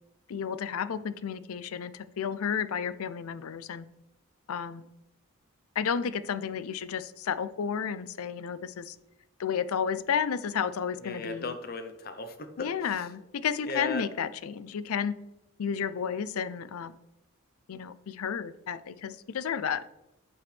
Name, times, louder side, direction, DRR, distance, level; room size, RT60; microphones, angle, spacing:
voice 1, 0.3-3.9 4.5-4.9 5.8-9.0 9.4-11.5 12.6-15.1 15.6-17.0 17.7-19.8, left 7 dB, 85° left, 15 dB, 0.4 m, -32 dB
voice 2, 11.0-12.7 13.7-14.1, left 3 dB, 45° left, 8 dB, 0.7 m, -36 dB
8.6 x 6.0 x 3.3 m, 0.89 s
head